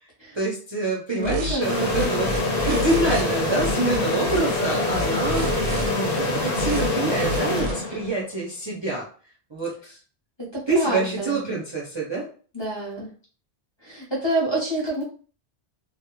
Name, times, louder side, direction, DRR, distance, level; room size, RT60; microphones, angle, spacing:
voice 1, 0.3-2.3 2.6-9.0 9.5-10.0 10.7-12.3, right 2 dB, 35° right, -5 dB, 0.5 m, -26 dB
voice 2, 1.1-2.2 10.5-11.4 12.5-13.1 13.8-15.0, right 1 dB, 30° left, -6 dB, 0.7 m, -27 dB
sound 1, 1.2-1.6 1.9-3.2 3.5-4.4 4.9-5.9 6.5-6.9 7.2-7.7, right 1 dB, 90° right, 1.0 m, -30 dB
sound 2, 1.6-8.3, left 2 dB, 55° left, 0.9 m, -25 dB
2.3 x 2.1 x 2.9 m, 0.40 s
omnidirectional pair, 1.1 m